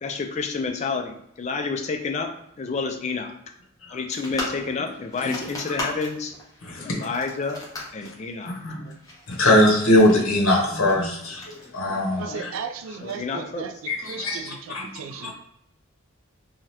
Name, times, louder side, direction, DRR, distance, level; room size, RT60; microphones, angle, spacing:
voice 1, 0.0-2.3 2.6-3.3 3.9-6.3 6.8-7.6 7.9-8.5 12.1-12.4 13.0-13.7, left 4 dB, 35° left, 4 dB, 0.3 m, -29 dB
sound 1, 4.1-12.4, left 1 dB, 15° left, 0.8 m, -38 dB
voice 2, 6.6-7.1 8.0-8.1 8.5-8.9 9.3-12.5 13.9-14.9 15.2-15.3, left 1 dB, 85° left, -1 dB, 0.8 m, -22 dB
voice 3, 12.2-15.3, right 6 dB, 75° right, 8 dB, 0.3 m, -36 dB
2.7 x 2.3 x 3.2 m, 0.77 s
head